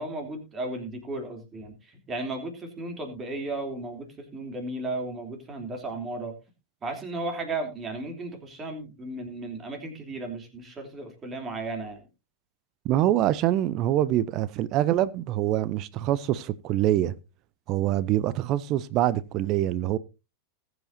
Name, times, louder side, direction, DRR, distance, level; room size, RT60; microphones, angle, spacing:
voice 1, 0.0-6.3 6.8-12.1, right 2 dB, 20° right, 3.2 m, -35 dB
voice 2, 12.8-17.1 17.7-20.0, right 13 dB, 40° right, 0.6 m, -25 dB
19.5 x 7.9 x 2.7 m
figure-of-eight pair, 90°, 0 cm